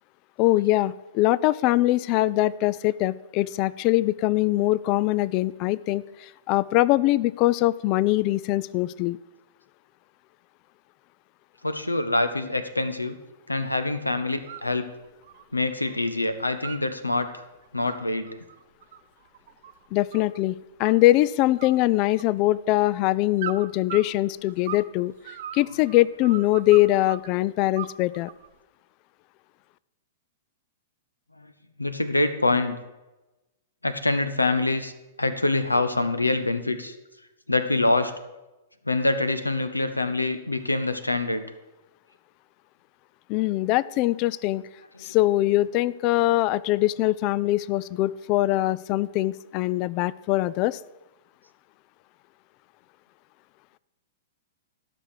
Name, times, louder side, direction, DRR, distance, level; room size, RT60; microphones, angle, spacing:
voice 1, 0.4-9.2 19.9-25.1 25.5-28.3 43.3-44.7 45.0-50.8, left 17 dB, 40° left, 20 dB, 0.3 m, -22 dB
voice 2, 11.6-13.2 13.5-14.9 15.5-17.4 17.7-18.4 31.8-32.8 33.8-34.9 35.2-37.0 37.5-38.1 38.9-41.4 45.0-45.1, left 2 dB, 90° left, 11 dB, 0.7 m, -25 dB
sound 1, 14.3-14.7 15.0-16.0 16.3-17.2 17.6-20.4 20.8-21.3 21.6-22.6 23.4-24.9 25.2-27.3 27.7-28.5, right 11 dB, 55° right, 0.6 m, -39 dB
13.0 x 5.9 x 6.6 m, 1.0 s
figure-of-eight pair, 105°, 0 cm